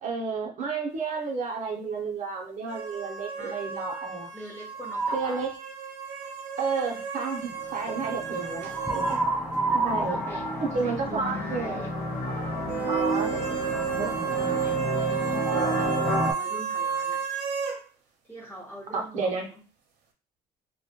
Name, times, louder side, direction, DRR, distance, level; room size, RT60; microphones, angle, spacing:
voice 1, 0.0-4.3 5.1-5.5 6.6-9.2 9.7-10.2 10.6-11.9 12.9-14.8 18.9-19.5, right 4 dB, 45° right, 1 dB, 0.7 m, -31 dB
sound 1, 2.7-9.2 9.5-9.6 12.7-17.8, right 7 dB, 90° right, 0.6 m, -32 dB
voice 2, 3.4-3.7 4.3-5.4 9.7-12.0 14.0-17.2 18.2-19.6, equal, 10° left, -2 dB, 0.8 m, -44 dB
sound 2, 4.9-5.5 8.7-11.5, right 2 dB, 5° right, 0.3 m, -29 dB
sound 3, 7.5-16.3, equal, 65° left, 0.6 m, -31 dB
2.1 x 2.1 x 2.8 m, 0.34 s
cardioid pair, 110°, 17 cm